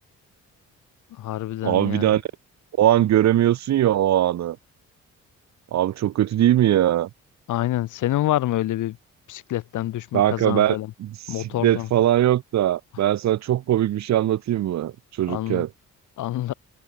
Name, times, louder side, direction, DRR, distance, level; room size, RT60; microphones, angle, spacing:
voice 1, 1.1-2.2 7.5-9.0 9.3-10.9 11.3-11.9 15.3-15.7 16.2-16.5, left 14 dB, 80° left, 3.9 m, -27 dB
voice 2, 1.6-2.2 2.8-4.6 5.7-7.1 10.1-11.1 11.4-14.9 15.2-15.7, right 12 dB, 65° right, 1.1 m, -21 dB
cardioid pair, 90°, 30 cm